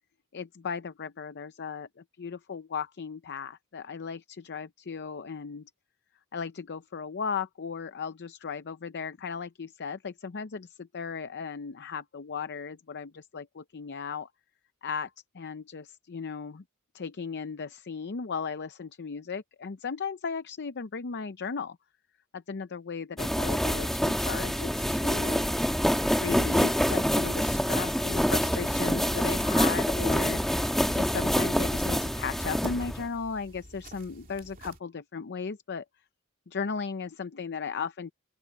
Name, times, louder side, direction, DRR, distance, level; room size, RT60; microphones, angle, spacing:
voice 1, 0.3-5.7 6.3-14.3 14.8-16.6 16.9-21.8 22.3-25.4 26.2-30.4 30.9-35.8 36.5-38.1, left 5 dB, 50° left, 0.6 m, -36 dB
sound 1, 23.2-33.1, equal, ahead, 1.3 m, -26 dB
sound 2, 28.2-34.8, right 2 dB, 40° right, 2.8 m, -47 dB
open air
head